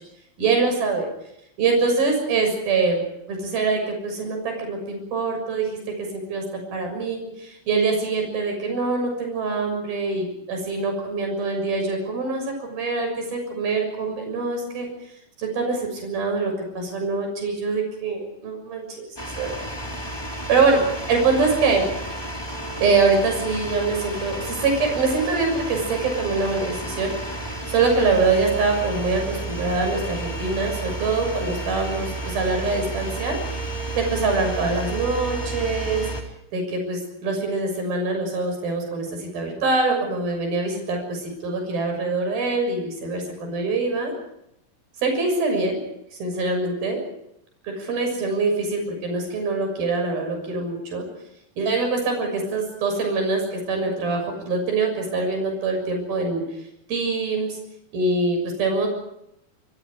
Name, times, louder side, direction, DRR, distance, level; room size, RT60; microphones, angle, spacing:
voice 1, 0.4-1.1 1.6-14.9 15.4-19.6 20.5-21.9 22.8-27.4 27.7-33.4 33.9-36.1 36.5-44.1 45.0-45.8 46.2-47.0 47.6-51.1 51.6-56.6 56.9-57.6 57.9-58.9, right 3 dB, 80° right, 4 dB, 8.5 m, -24 dB
sound 1, 19.2-36.2, right 2 dB, 5° left, 3.3 m, -32 dB
29.0 x 25.0 x 5.0 m, 0.80 s
omnidirectional pair, 4.2 m